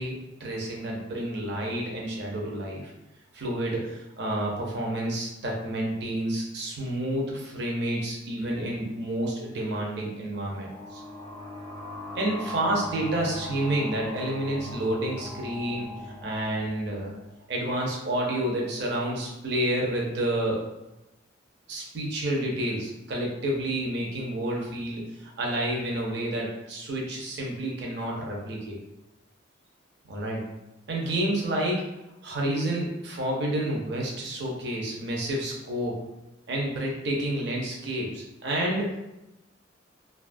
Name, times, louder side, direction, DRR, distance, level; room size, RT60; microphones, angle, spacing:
voice 1, 0.0-2.9 3.3-11.0 12.1-17.1 17.5-20.6 21.7-28.8 30.1-30.4 30.9-31.8 32.2-36.0 36.5-39.0, right 1 dB, 60° right, -2 dB, 0.5 m, -29 dB
sound 1, 10.3-17.7, left 1 dB, 15° left, 0.5 m, -40 dB
2.6 x 2.3 x 2.5 m, 0.94 s
head